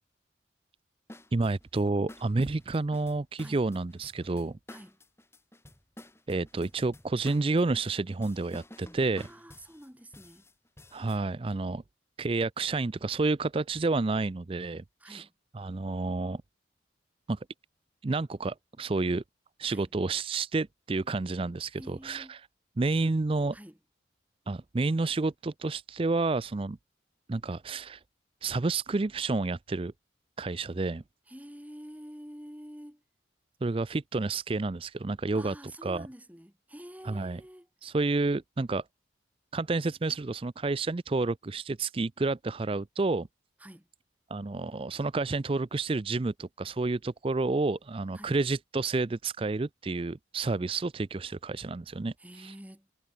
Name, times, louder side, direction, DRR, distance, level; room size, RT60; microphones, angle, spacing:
sound 1, 1.1-11.2, left 1 dB, 15° left, 7.6 m, -51 dB
voice 1, 1.3-4.6 6.3-9.2 10.9-11.8 12.2-14.8 15.1-15.2 15.6-16.4 17.3-17.4 18.0-19.2 19.6-22.4 22.8-23.5 24.5-26.8 27.3-28.0 28.4-29.9 30.4-31.0 33.6-35.5 35.8-36.0 37.1-37.4 37.8-38.8 39.5-43.3 44.3-52.1 52.4-52.5, right 3 dB, 30° right, 0.4 m, -30 dB
voice 2, 4.7-5.0 9.2-10.5 15.0-15.3 19.7-19.9 21.7-22.4 23.0-23.1 23.5-23.8 31.2-33.0 35.3-37.7 43.6-43.9 48.1-48.4 52.2-52.9, equal, 10° right, 4.1 m, -48 dB
head